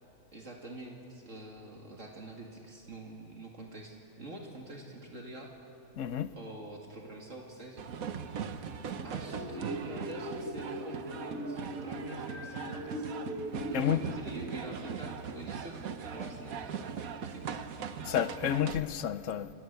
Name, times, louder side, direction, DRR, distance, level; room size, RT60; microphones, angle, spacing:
voice 1, 0.3-5.5 6.3-7.9 9.0-13.1 13.7-17.7, right 2 dB, 60° right, 2.6 m, -46 dB
voice 2, 6.0-6.3 13.7-14.0 18.0-19.5, left 10 dB, 65° left, 1.0 m, -30 dB
sound 1, 7.8-18.8, right 6 dB, 75° right, 1.5 m, -40 dB
sound 2, 9.2-14.4, right 1 dB, 35° right, 4.2 m, -40 dB
28.0 x 19.0 x 8.1 m
omnidirectional pair, 1.5 m